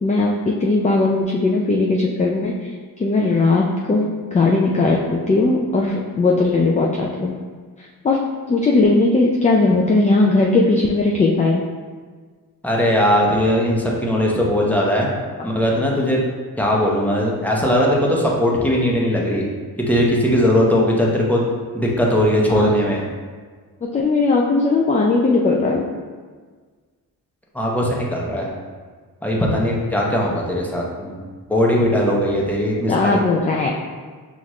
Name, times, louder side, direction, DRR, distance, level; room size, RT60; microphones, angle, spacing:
voice 1, 0.0-7.3 7.8-8.2 8.5-11.6 22.5-22.7 23.9-25.8 32.9-33.7, left 3 dB, 20° left, -1 dB, 0.3 m, -18 dB
voice 2, 12.6-15.1 15.4-16.2 16.6-19.4 19.9-21.4 21.7-23.0 27.5-28.5 29.2-31.2 31.5-33.2, equal, 5° left, -3 dB, 0.8 m, -19 dB
5.8 x 2.5 x 3.1 m, 1.5 s
cardioid pair, 95°, 38 cm